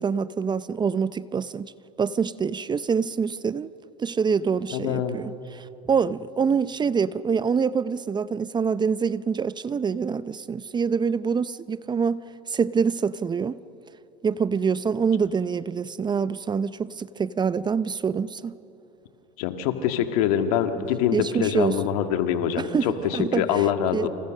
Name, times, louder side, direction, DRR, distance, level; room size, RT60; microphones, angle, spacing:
voice 1, 0.0-1.7 2.0-3.7 4.0-12.2 12.5-13.6 14.2-18.6 21.1-21.7 22.6-23.5 23.9-24.1, right 6 dB, 20° right, 0.6 m, -25 dB
voice 2, 4.7-5.2 19.4-24.1, left 9 dB, 70° left, 2.2 m, -24 dB
29.0 x 27.0 x 6.6 m
hypercardioid pair, 90°, 19 cm